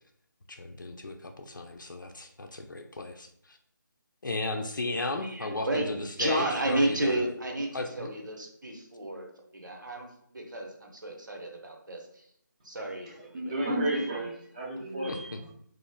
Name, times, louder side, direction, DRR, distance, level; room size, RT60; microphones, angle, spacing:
voice 1, 0.5-3.6 4.2-7.2 7.7-8.1 15.1-15.5, left 2 dB, 75° left, 4 dB, 0.4 m, -35 dB
voice 2, 5.2-5.8 6.2-9.3 9.5-12.3 12.6-13.8, right 1 dB, 70° right, 1 dB, 0.7 m, -32 dB
voice 3, 13.3-15.5, right 1 dB, 25° right, -3 dB, 0.5 m, -32 dB
3.1 x 2.4 x 2.2 m, 0.69 s
figure-of-eight pair, 160°, 11 cm